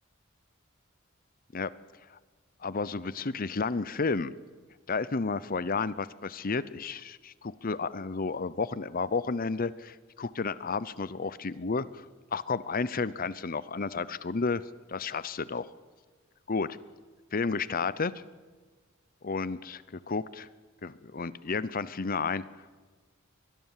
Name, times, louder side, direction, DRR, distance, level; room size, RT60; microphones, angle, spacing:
voice 1, 2.6-4.3 4.9-12.0 12.3-14.6 14.9-15.7 16.5-16.8 17.3-18.2 19.2-20.5 20.8-22.7, left 4 dB, 45° left, 17 dB, 0.7 m, -32 dB
23.5 x 21.0 x 7.4 m, 1.4 s
head